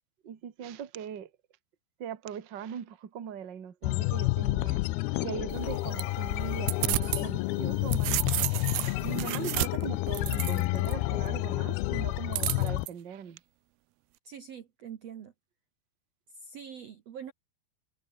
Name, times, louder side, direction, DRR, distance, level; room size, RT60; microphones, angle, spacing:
voice 1, 0.2-1.3 2.0-4.8 5.2-8.2 9.0-13.4, right 8 dB, 40° right, 1.9 m, -40 dB
sound 1, 3.8-12.9, left 21 dB, 85° left, 2.6 m, -30 dB
sound 2, 5.5-7.3 7.6-10.9 12.3-12.9, right 20 dB, 85° right, 2.7 m, -32 dB
voice 2, 14.2-15.3 16.3-17.3, right 7 dB, 55° right, 2.1 m, -44 dB
omnidirectional pair, 4.3 m